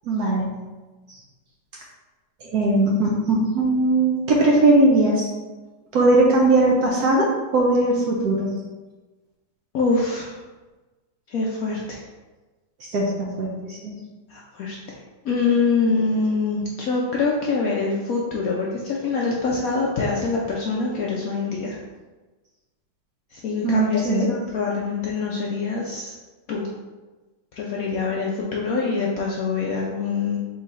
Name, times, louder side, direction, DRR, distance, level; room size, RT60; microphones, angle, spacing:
voice 1, 0.1-0.5 2.4-5.3 5.9-8.5 12.9-13.9 23.6-24.3, right 2 dB, 65° right, -2 dB, 1.0 m, -19 dB
voice 2, 9.7-10.4 11.3-12.0 14.3-15.0 15.2-21.8 23.3-26.1 26.5-26.7 27.5-30.4, left 4 dB, 70° left, -3 dB, 0.8 m, -24 dB
3.7 x 3.2 x 4.0 m, 1.2 s
omnidirectional pair, 2.1 m